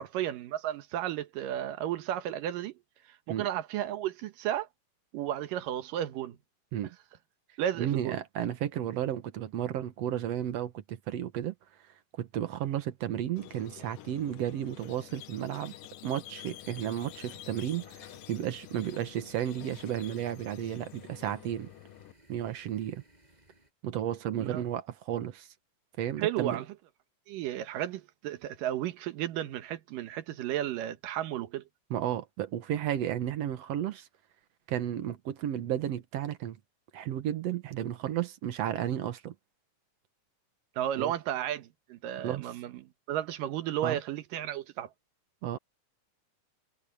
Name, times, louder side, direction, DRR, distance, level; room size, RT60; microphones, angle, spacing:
voice 1, 0.0-2.7 3.3-4.7 5.1-6.4 7.6-8.2 24.4-24.6 26.2-26.7 27.3-31.6 40.8-44.9, right 11 dB, 80° right, 2.8 m, -33 dB
voice 2, 7.8-11.5 12.2-15.7 16.0-21.7 22.3-23.0 23.8-25.5 26.0-26.6 31.9-34.1 34.7-36.6 36.9-39.3 41.0-41.1 42.2-42.5 43.8-44.0 45.4-45.6, right 11 dB, 60° right, 1.9 m, -33 dB
Squeak, 13.4-22.1, left 13 dB, 90° left, 2.7 m, -49 dB
sound 1, 16.6-23.7, right 1 dB, 10° right, 7.5 m, -62 dB
omnidirectional pair, 3.8 m